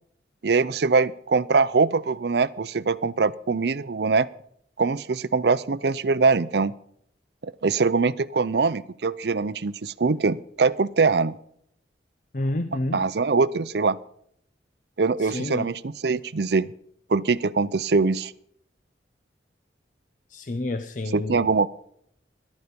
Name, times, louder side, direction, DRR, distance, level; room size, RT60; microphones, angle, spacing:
voice 1, 0.4-4.3 4.8-6.7 7.4-11.4 12.9-14.0 15.0-16.7 17.1-18.3 21.1-21.7, right 4 dB, 65° right, 17 dB, 0.5 m, -23 dB
voice 2, 12.3-13.0 15.2-15.7 20.3-21.5, left 1 dB, 45° left, 11 dB, 0.6 m, -29 dB
14.0 x 11.5 x 5.3 m, 0.68 s
head